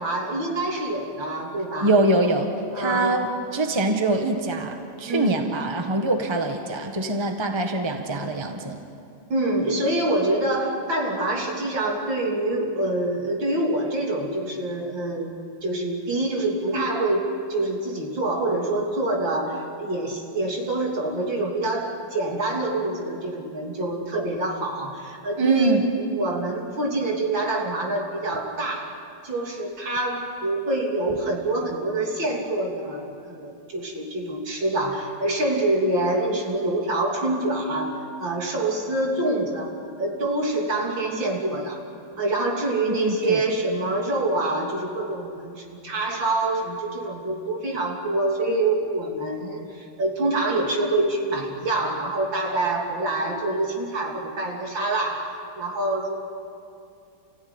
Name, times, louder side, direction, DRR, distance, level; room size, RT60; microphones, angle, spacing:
voice 1, 0.0-1.9 2.7-3.3 5.1-5.4 9.3-15.3 15.6-39.7 40.0-41.8 42.2-56.2, right 2 dB, 70° right, 0 dB, 3.9 m, -26 dB
voice 2, 1.8-2.5 2.7-8.8 25.4-25.8 43.0-43.4, right 2 dB, 15° right, 4 dB, 1.5 m, -24 dB
29.5 x 16.0 x 9.8 m, 2.5 s
omnidirectional pair, 2.1 m